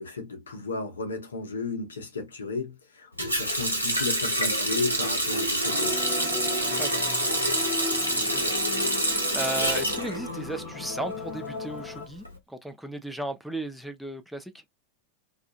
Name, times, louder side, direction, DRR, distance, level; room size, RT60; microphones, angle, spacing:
voice 1, 0.0-6.2, left 3 dB, 70° left, 0.7 m, -34 dB
Water tap faucet, 3.2-10.9 11.2-12.3, right 1 dB, 90° right, 0.7 m, -27 dB
sound 1, 5.6-12.1, left 3 dB, 30° left, 0.7 m, -37 dB
voice 2, 8.2-8.6 9.3-14.6, right 1 dB, ahead, 0.3 m, -35 dB
2.4 x 2.2 x 2.4 m
figure-of-eight pair, 90°, 0 cm